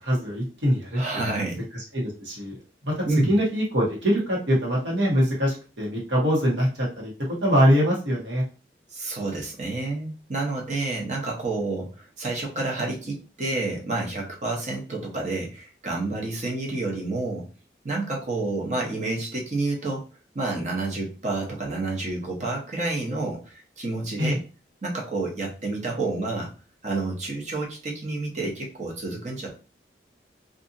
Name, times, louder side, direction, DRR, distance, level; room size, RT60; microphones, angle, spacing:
voice 1, 0.0-1.0 1.9-2.5 2.8-7.1 7.4-8.4 24.2-24.4, equal, 85° right, -3 dB, 1.2 m, -23 dB
voice 2, 0.9-1.6 3.0-3.3 8.9-17.5 17.8-20.1 20.3-24.4 24.8-26.5 26.8-29.5, right 2 dB, 40° right, -1 dB, 0.7 m, -29 dB
2.7 x 2.5 x 2.5 m, 0.34 s
head